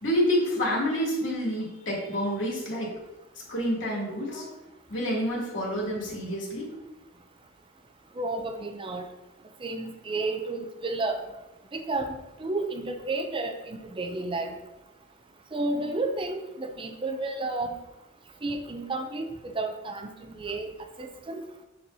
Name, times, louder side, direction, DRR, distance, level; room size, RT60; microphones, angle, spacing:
voice 1, 0.0-2.9 3.5-4.5 4.9-6.7, equal, 70° left, -4 dB, 2.6 m, -28 dB
voice 2, 8.1-9.1 9.6-11.2 11.7-14.6 15.5-17.8 18.4-20.7 21.0-21.4, right 2 dB, 25° right, 4 dB, 0.5 m, -32 dB
7.2 x 6.3 x 2.8 m, 0.97 s
head